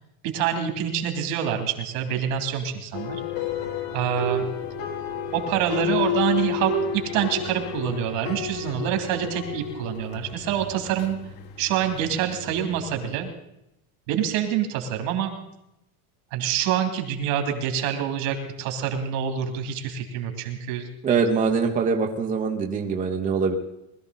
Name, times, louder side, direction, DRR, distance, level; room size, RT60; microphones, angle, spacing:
voice 1, 0.2-3.2 3.9-4.5 5.3-11.2 11.6-13.3 14.1-15.3 16.3-20.9, right 9 dB, 70° right, 4 dB, 3.0 m, -26 dB
sound 1, 2.9-13.2, left 5 dB, 55° left, 1.8 m, -31 dB
voice 2, 21.0-23.6, right 5 dB, 20° right, 2 dB, 0.9 m, -23 dB
20.5 x 13.5 x 4.0 m, 0.86 s
cardioid pair, 175°, 42 cm